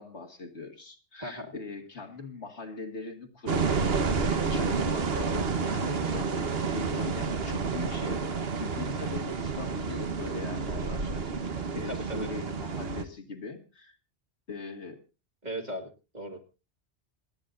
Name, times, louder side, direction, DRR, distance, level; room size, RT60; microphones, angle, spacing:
voice 1, 0.0-3.8 4.2-14.0 14.5-15.0, left 4 dB, 65° left, 4 dB, 2.4 m, -41 dB
voice 2, 1.2-1.5 11.5-12.3 15.4-16.4, right 1 dB, 35° right, 4 dB, 2.4 m, -38 dB
sound 1, 3.5-13.0, right 4 dB, 55° right, 1.4 m, -30 dB
27.5 x 9.8 x 2.6 m, 0.31 s
omnidirectional pair, 1.2 m